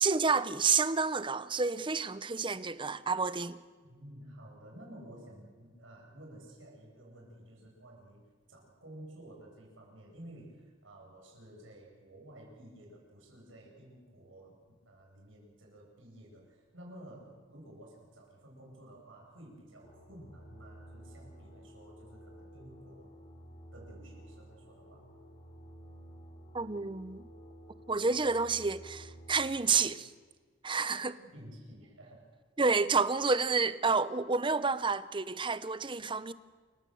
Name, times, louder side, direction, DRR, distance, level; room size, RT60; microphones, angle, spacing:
voice 1, 0.0-3.6 26.5-27.3 27.9-30.1 30.6-31.2 32.6-36.3, right 4 dB, 25° right, 0.8 m, -29 dB
voice 2, 3.8-23.2 23.7-25.1 31.2-32.3, right 1 dB, 80° right, 7.8 m, -52 dB
sound 1, 19.8-29.9, equal, 35° left, 3.3 m, -52 dB
28.5 x 16.0 x 7.8 m
head